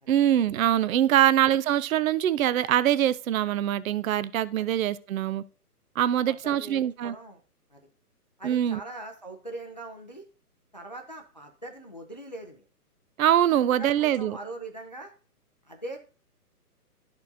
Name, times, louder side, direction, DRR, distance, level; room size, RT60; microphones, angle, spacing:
voice 1, 0.1-5.4 6.0-7.1 8.4-8.8 13.2-14.4, right 11 dB, 60° right, 0.5 m, -23 dB
voice 2, 6.3-7.4 7.7-7.8 8.4-10.2 10.7-12.6 13.7-15.1 15.6-16.0, right 2 dB, 30° left, 0.4 m, -41 dB
12.0 x 4.4 x 2.6 m
hypercardioid pair, 155°, 47 cm